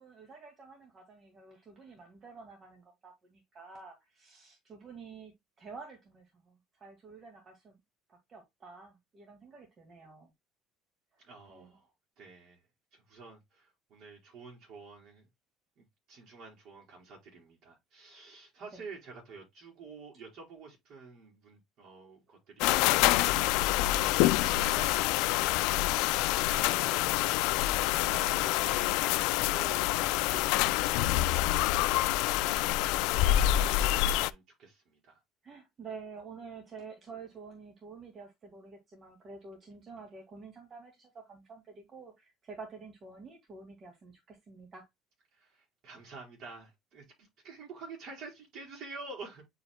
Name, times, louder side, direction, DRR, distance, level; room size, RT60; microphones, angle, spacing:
voice 1, 0.0-7.8 8.1-10.3 11.1-11.7 18.7-18.8 28.1-28.2 35.4-44.9, right 4 dB, 30° right, 2.1 m, -49 dB
voice 2, 11.2-11.9 12.2-12.6 12.9-15.2 15.8-32.3 32.9-35.2 45.3-49.4, right 4 dB, 55° right, 4.8 m, -50 dB
sound 1, 22.6-34.3, left 15 dB, 90° left, 0.4 m, -27 dB
9.4 x 4.8 x 2.2 m
cardioid pair, 150°, 0 cm